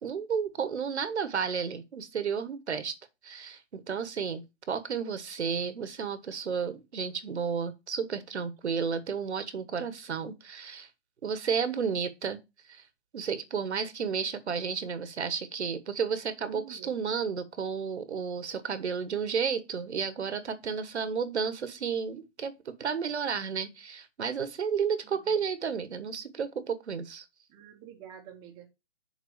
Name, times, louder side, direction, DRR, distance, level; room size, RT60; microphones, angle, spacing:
voice 1, 0.0-3.0 3.2-4.4 4.7-10.9 11.2-12.4 12.7-12.8 13.1-27.2, right 6 dB, 70° right, 1.3 m, -32 dB
voice 2, 16.4-16.9 25.0-25.4 27.5-28.7, right 10 dB, 15° right, 1.0 m, -48 dB
6.8 x 3.9 x 6.4 m
hypercardioid pair, 155°, 35 cm